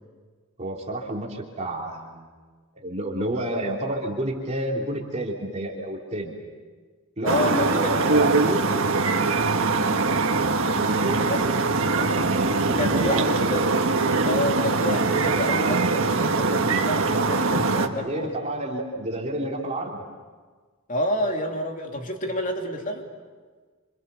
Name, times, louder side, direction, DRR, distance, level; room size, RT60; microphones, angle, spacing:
voice 1, 0.6-2.3 2.7-6.3 7.2-8.7 9.2-10.2 10.7-12.1 12.7-13.3 17.8-20.0, right 1 dB, 35° right, -2 dB, 3.3 m, -30 dB
voice 2, 7.2-8.0 11.3-11.4 12.7-13.7 14.2-18.4 20.9-23.0, left 1 dB, 40° left, 3 dB, 2.9 m, -28 dB
sound 1, 7.3-17.9, right 3 dB, 70° right, 1.7 m, -22 dB
28.5 x 26.5 x 7.0 m, 1.5 s
head